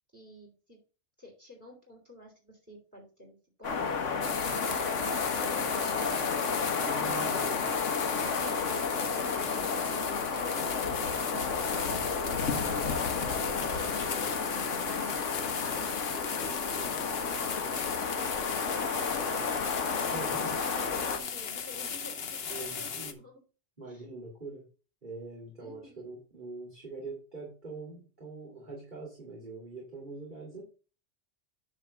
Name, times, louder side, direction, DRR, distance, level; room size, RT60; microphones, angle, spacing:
voice 1, 0.1-0.8 1.2-4.0 17.8-18.4 18.7-23.4 23.9-24.0 25.6-26.1, left 1 dB, 15° right, -1 dB, 3.1 m, -50 dB
Wind Rustling Trees, 3.6-21.2, left 5 dB, 85° left, 1.5 m, -32 dB
sound 1, 4.2-23.1, left 6 dB, 60° left, 1.1 m, -37 dB
voice 2, 6.7-7.7 8.9-9.5 20.1-20.6 22.5-23.2 23.8-24.6 25.0-30.6, right 3 dB, 40° right, -3 dB, 2.6 m, -43 dB
9.8 x 3.3 x 6.8 m, 0.36 s
omnidirectional pair, 1.2 m